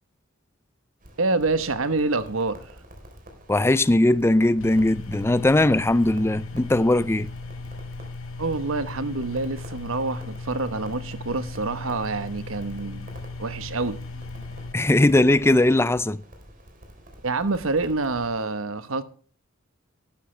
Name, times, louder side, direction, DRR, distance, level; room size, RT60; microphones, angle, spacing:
Crackle, 1.0-18.3, equal, 45° right, 3.7 m, -48 dB
voice 1, 1.2-2.6 8.4-13.1 13.4-14.0 17.2-19.0, right 3 dB, 75° right, 1.1 m, -27 dB
voice 2, 3.5-7.3 14.7-16.2, left 1 dB, 10° left, 0.5 m, -19 dB
sound 1, 4.6-14.7, left 3 dB, 80° left, 1.3 m, -37 dB
12.0 x 11.5 x 3.3 m
head